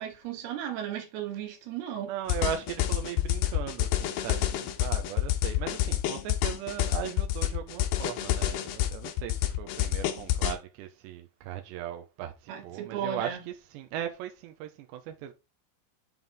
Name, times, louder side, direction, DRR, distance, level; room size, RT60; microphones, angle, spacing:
voice 1, 0.0-2.1 12.5-13.4, right 9 dB, 65° right, 3.0 m, -35 dB
voice 2, 2.0-15.3, right 10 dB, 85° right, 2.5 m, -38 dB
sound 1, 2.3-10.6, left 13 dB, 85° left, 2.3 m, -28 dB
7.8 x 5.5 x 3.5 m
omnidirectional pair, 5.9 m